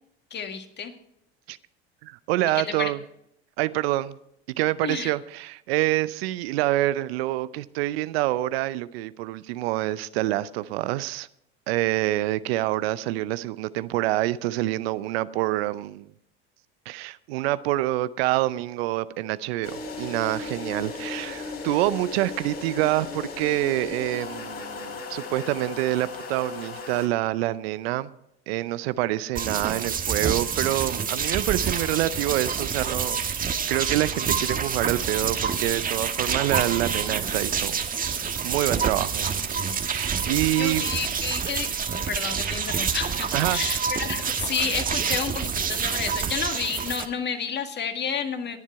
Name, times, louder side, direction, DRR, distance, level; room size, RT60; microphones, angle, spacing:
voice 1, 0.3-0.9 2.5-2.9 4.8-5.1 40.6-48.6, left 6 dB, 35° left, 1.9 m, -31 dB
voice 2, 2.0-3.0 3.6-4.2 4.6-11.3 11.7-16.1 16.9-19.7 20.0-28.1 28.5-39.3 39.8-40.9 43.3-43.6, right 16 dB, 70° right, 0.6 m, -26 dB
sound 1, 19.6-27.1, left 4 dB, 50° left, 4.9 m, -36 dB
sound 2, 29.4-47.1, right 6 dB, 25° right, 1.3 m, -27 dB
20.5 x 7.4 x 4.7 m
hypercardioid pair, 85°, 31 cm